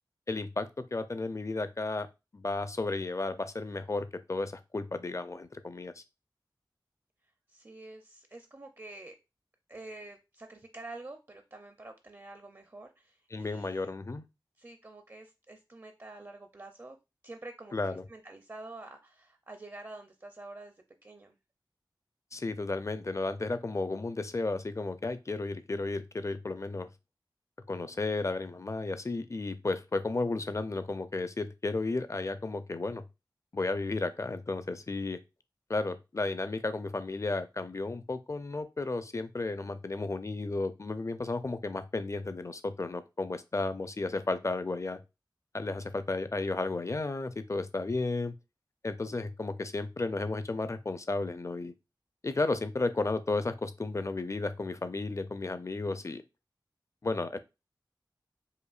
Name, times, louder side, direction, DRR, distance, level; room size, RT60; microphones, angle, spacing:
voice 1, 0.3-2.1 2.3-6.0 13.3-14.2 17.7-18.0 22.3-26.9 27.7-33.0 33.5-35.2 35.7-45.0 45.5-48.3 48.8-51.7 52.2-56.2 57.0-57.4, left 3 dB, 40° left, 11 dB, 0.5 m, -33 dB
voice 2, 7.5-9.2 9.7-13.9 14.6-17.0 17.2-21.4, right 2 dB, 35° right, 5 dB, 0.5 m, -48 dB
4.9 x 2.4 x 2.4 m, 0.25 s
wide cardioid pair, 50°, 8 cm